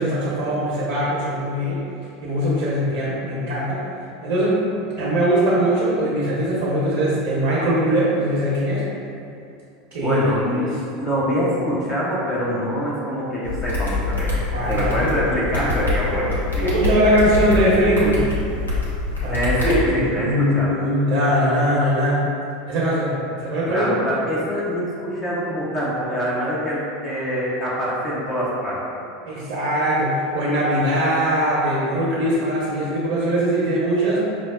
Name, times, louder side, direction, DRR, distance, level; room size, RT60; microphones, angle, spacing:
voice 1, 0.0-1.8 2.2-3.8 4.2-4.6 5.0-8.8 9.9-10.2 10.5-10.7 14.5-15.1 16.6-18.2 19.2-22.3 22.7-23.8 29.3-34.3, equal, 55° right, -7 dB, 0.8 m, -21 dB
voice 2, 10.0-10.7 11.0-14.4 14.7-16.7 19.3-20.8 23.7-28.8, equal, 25° left, -7 dB, 0.7 m, -24 dB
sound 1, 13.4-19.7, left 3 dB, 85° left, 0.7 m, -25 dB
5.6 x 2.0 x 2.4 m, 2.6 s
figure-of-eight pair, 80°, 0 cm